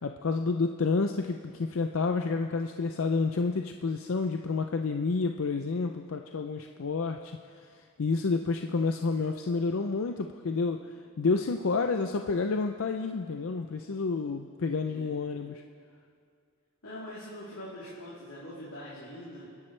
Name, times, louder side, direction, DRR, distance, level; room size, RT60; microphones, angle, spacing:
voice 1, 0.0-7.4 8.0-10.8 11.2-15.6, left 4 dB, 65° left, 5 dB, 0.5 m, -29 dB
voice 2, 14.8-15.1 16.8-19.5, left 1 dB, 90° left, -9 dB, 3.4 m, -43 dB
28.5 x 11.0 x 3.3 m, 2.4 s
head